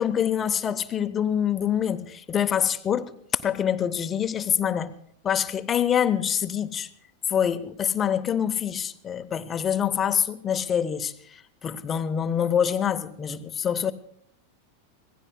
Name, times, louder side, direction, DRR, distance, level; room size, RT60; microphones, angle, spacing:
voice 1, 0.0-3.1 3.4-4.9 5.2-6.9 7.3-13.9, left 8 dB, 25° left, 0.9 m, -25 dB
25.5 x 17.5 x 2.2 m
figure-of-eight pair, 90°, 0 cm